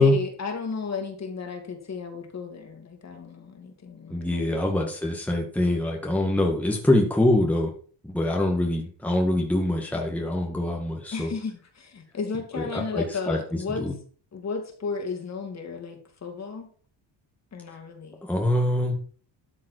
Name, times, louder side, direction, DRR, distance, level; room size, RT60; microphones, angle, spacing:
voice 1, 0.0-4.7 11.1-13.8 14.3-16.7 17.5-18.2, left 5 dB, 35° left, 4 dB, 2.8 m, -34 dB
voice 2, 4.1-7.7 8.0-11.3 12.5-12.7 12.9-13.4 13.8-13.9 18.2-19.0, left 1 dB, 5° left, 0 dB, 1.8 m, -24 dB
12.5 x 7.5 x 4.6 m, 0.42 s
cardioid pair, 135°, 45 cm